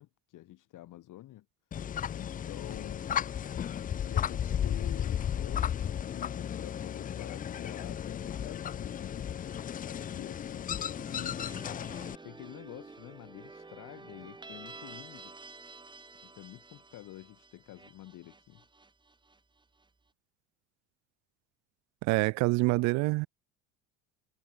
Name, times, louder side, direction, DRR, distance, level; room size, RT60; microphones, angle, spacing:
voice 1, 0.0-1.5 2.1-3.1 4.1-9.3 9.8-11.7 12.2-15.4 16.2-18.6, left 15 dB, 55° left, 7.1 m, -48 dB
sound 1, 1.7-12.2, left 9 dB, 25° left, 0.5 m, -34 dB
sound 2, 11.0-19.8, right 3 dB, 10° right, 1.9 m, -50 dB
voice 2, 22.0-23.3, right 24 dB, 50° right, 0.4 m, -26 dB
supercardioid pair, 100°, 37 cm